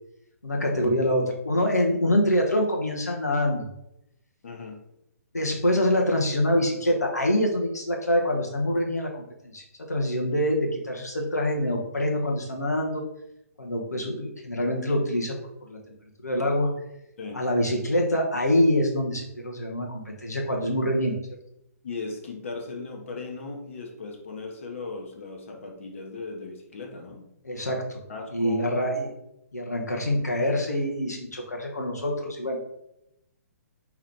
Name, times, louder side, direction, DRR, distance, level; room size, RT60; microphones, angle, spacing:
voice 1, 0.4-3.7 5.3-13.1 13.6-15.3 15.6-15.8 16.2-16.7 17.3-21.2 27.4-28.0 28.3-29.1 29.5-32.6, left 1 dB, 80° left, 0 dB, 0.9 m, -25 dB
voice 2, 4.4-4.8 17.2-17.4 21.8-27.3 28.1-28.7, left 3 dB, 50° left, 1 dB, 0.9 m, -37 dB
4.7 x 2.9 x 3.6 m, 0.82 s
figure-of-eight pair, 130°, 9 cm